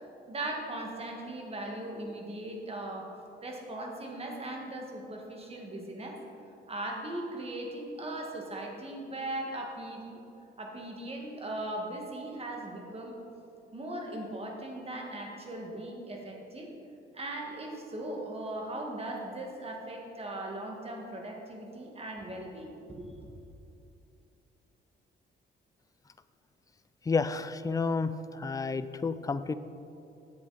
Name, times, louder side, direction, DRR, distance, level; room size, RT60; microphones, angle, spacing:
voice 1, 0.3-3.1 3.4-6.2 6.7-10.2 10.6-13.2 13.7-16.7 17.1-23.1, right 1 dB, 30° right, 0 dB, 1.8 m, -39 dB
voice 2, 27.1-29.5, left 4 dB, 15° left, 13 dB, 0.4 m, -30 dB
11.0 x 8.1 x 4.1 m, 2.7 s
cardioid pair, 90°, 20 cm